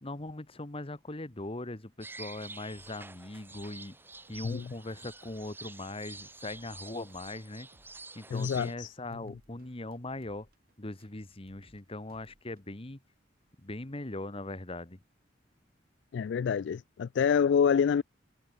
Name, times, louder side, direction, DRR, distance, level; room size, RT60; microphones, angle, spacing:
voice 1, 0.0-4.0 4.3-7.7 8.1-10.5 10.8-13.0 13.6-15.0, left 2 dB, 30° left, 1.5 m, -40 dB
sound 1, 2.0-8.7, right 3 dB, 10° right, 1.4 m, -48 dB
sound 2, 2.7-3.7 4.0-6.8 7.1-8.7 9.0-11.8 12.1-12.7, right 1 dB, 55° right, 2.7 m, -64 dB
voice 2, 8.3-8.9 16.1-18.0, left 7 dB, 70° left, 0.3 m, -27 dB
head